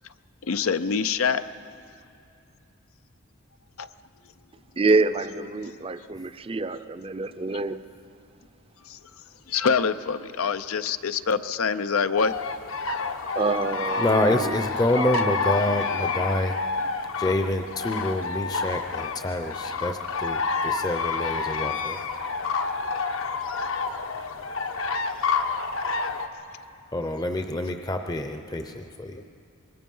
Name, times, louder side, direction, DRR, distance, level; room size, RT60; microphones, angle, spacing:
voice 1, 0.4-1.4 3.8-3.9 5.6-5.8 8.8-9.0 9.5-12.3 23.6-23.7, left 6 dB, 85° left, 12 dB, 0.6 m, -25 dB
voice 2, 4.8-7.8 13.4-14.6 14.9-15.2, right 3 dB, 25° right, 12 dB, 0.5 m, -26 dB
sound 1, 12.2-26.3, left 4 dB, 70° left, 1.0 m, -29 dB
voice 3, 14.0-16.6 17.2-22.0 26.9-29.2, left 1 dB, 20° left, 6 dB, 0.6 m, -27 dB
25.0 x 21.0 x 5.5 m, 2.5 s
head